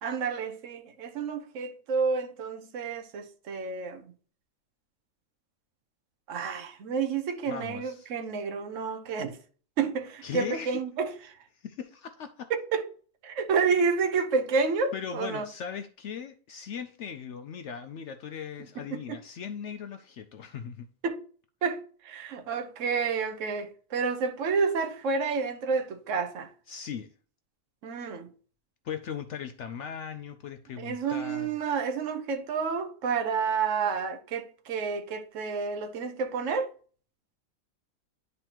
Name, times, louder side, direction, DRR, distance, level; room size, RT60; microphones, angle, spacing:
voice 1, 0.0-4.1 6.3-9.4 9.8-11.4 12.5-12.9 13.2-15.5 18.8-19.2 21.0-21.2 21.6-26.5 27.8-28.3 30.8-36.7, right 5 dB, 65° right, 1.1 m, -30 dB
voice 2, 7.5-8.1 10.2-10.8 11.6-12.5 14.9-20.9 26.7-27.1 28.8-31.5, left 7 dB, 65° left, 0.8 m, -38 dB
10.5 x 4.1 x 2.9 m
omnidirectional pair, 1.5 m